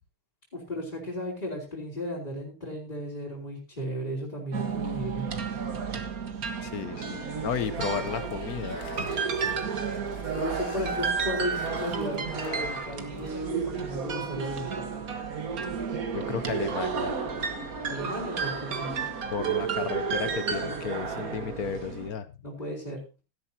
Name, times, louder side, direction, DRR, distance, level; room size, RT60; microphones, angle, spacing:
voice 1, 0.5-5.3 10.3-14.9 17.9-19.0 22.4-23.0, equal, 20° left, -7 dB, 4.0 m, -35 dB
sound 1, 4.5-22.1, right 5 dB, 45° right, 1.8 m, -32 dB
voice 2, 6.6-8.8 16.1-17.2 19.3-22.3, left 7 dB, 60° left, 13 dB, 1.0 m, -33 dB
sound 2, 7.5-13.3, left 4 dB, 45° left, 1.8 m, -45 dB
17.5 x 13.0 x 2.8 m, 0.28 s
omnidirectional pair, 2.3 m